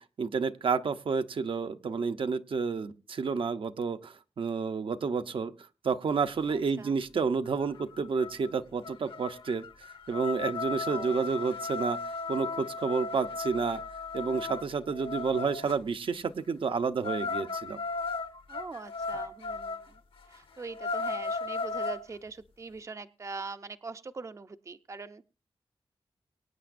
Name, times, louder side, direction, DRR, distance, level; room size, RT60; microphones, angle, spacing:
voice 1, 0.0-5.5 5.8-9.6 10.1-12.0 12.3-13.8 14.1-17.8, right 5 dB, 65° right, 9 dB, 0.7 m, -30 dB
voice 2, 6.5-6.9 10.9-11.3 18.5-19.8 20.3-25.2, right 4 dB, 30° right, 11 dB, 0.5 m, -42 dB
sound 1, 7.8-7.9 8.2-8.5 8.8-15.7 17.0-19.8 20.2-20.3 20.7-22.0, left 4 dB, 65° left, 1.2 m, -35 dB
23.5 x 9.2 x 2.5 m, 0.32 s
wide cardioid pair, 120°, 10 cm